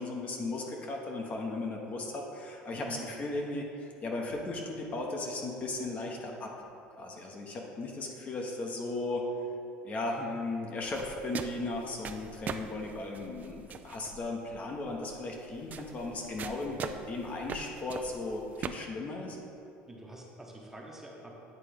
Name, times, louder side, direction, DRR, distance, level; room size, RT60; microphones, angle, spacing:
voice 1, 0.0-6.5 7.0-9.3 9.8-19.4, left 2 dB, 35° left, 0 dB, 0.8 m, -36 dB
voice 2, 2.7-3.0 19.9-21.4, right 2 dB, 10° right, -1 dB, 0.9 m, -46 dB
sound 1, 10.8-18.7, right 7 dB, 40° right, 0.3 m, -42 dB
9.2 x 3.7 x 3.4 m, 2.7 s
supercardioid pair, 115°, 4 cm